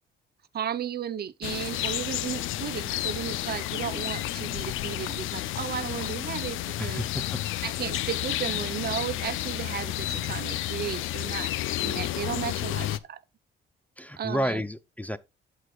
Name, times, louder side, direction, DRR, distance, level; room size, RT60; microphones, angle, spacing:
voice 1, 0.5-7.0 7.6-11.5 11.8-13.2 14.2-14.6, right 9 dB, 50° right, 0.7 m, -34 dB
sound 1, 1.4-13.0, left 14 dB, 85° left, 0.6 m, -31 dB
voice 2, 6.8-7.4 14.0-15.2, equal, 5° left, 0.6 m, -31 dB
14.0 x 5.0 x 2.4 m
cardioid pair, 90°, 20 cm